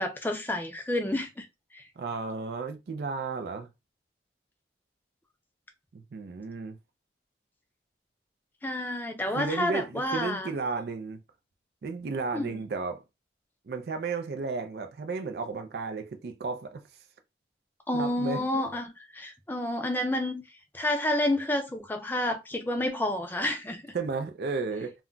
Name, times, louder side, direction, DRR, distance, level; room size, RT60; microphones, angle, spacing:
voice 1, 0.0-1.5 1.7-1.8 8.6-10.5 12.3-12.6 17.9-20.4 20.7-23.8, left 1 dB, 10° left, 0.4 m, -29 dB
voice 2, 2.0-3.7 5.9-6.8 9.3-11.2 11.8-13.0 13.7-16.8 17.9-18.5 23.9-24.9, right 4 dB, 60° right, 0.4 m, -33 dB
2.2 x 2.1 x 3.7 m
head